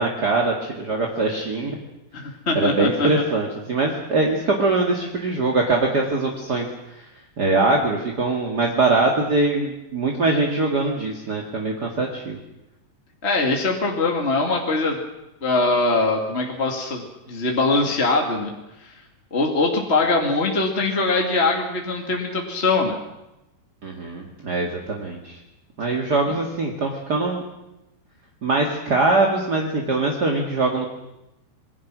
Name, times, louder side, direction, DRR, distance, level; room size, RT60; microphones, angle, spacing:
voice 1, 0.0-1.8 2.5-6.7 7.4-12.4 23.8-25.4 25.8-27.4 28.4-30.9, right 3 dB, 35° right, 0 dB, 1.7 m, -22 dB
voice 2, 2.1-3.2 13.2-15.0 15.4-18.5 18.8-18.9 19.3-22.9 26.3-26.4, left 3 dB, 25° left, 1 dB, 1.6 m, -22 dB
26.5 x 21.5 x 6.2 m, 0.93 s
omnidirectional pair, 4.7 m